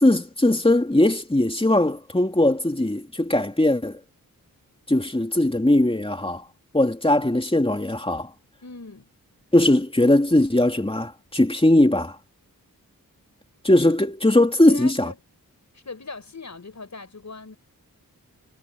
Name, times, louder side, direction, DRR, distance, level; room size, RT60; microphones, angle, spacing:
voice 1, 0.0-4.0 4.9-6.4 6.7-8.3 9.5-12.1 13.6-15.1, left 1 dB, 15° left, 2.9 m, -19 dB
voice 2, 8.6-9.1 14.7-15.2 15.7-17.6, left 3 dB, 50° left, 5.8 m, -39 dB
wide cardioid pair, 100°, 35 cm